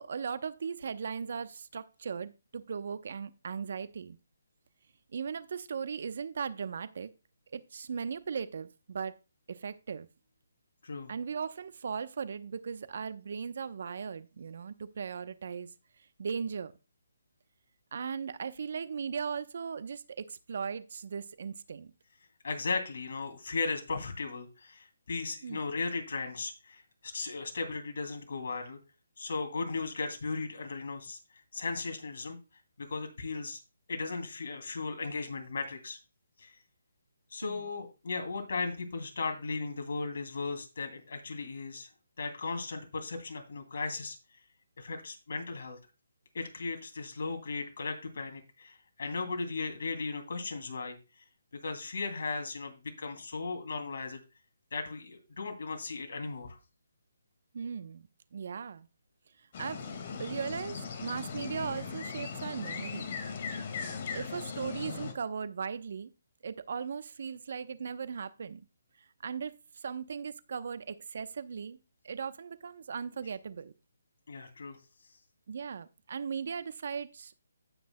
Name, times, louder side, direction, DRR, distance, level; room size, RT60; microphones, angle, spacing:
voice 1, 0.0-4.2 5.1-7.1 7.5-9.2 9.5-10.1 11.1-15.7 16.2-16.7 17.9-21.9 25.4-25.6 37.4-37.6 57.5-58.9 59.6-59.9 60.2-63.1 64.1-66.1 66.4-68.7 69.2-71.8 72.0-73.7 75.5-77.4, right 6 dB, 60° right, 0.8 m, -38 dB
voice 2, 22.4-28.8 29.2-31.2 31.5-32.4 32.8-33.6 33.9-36.0 36.4-36.6 37.3-41.9 42.2-44.2 44.8-45.8 46.3-51.0 51.5-54.2 54.7-56.6 74.3-74.8, left 4 dB, 60° left, 2.6 m, -36 dB
sound 1, 59.5-65.1, left 5 dB, 45° left, 1.9 m, -38 dB
17.0 x 5.9 x 2.2 m
hypercardioid pair, 155°, 0 cm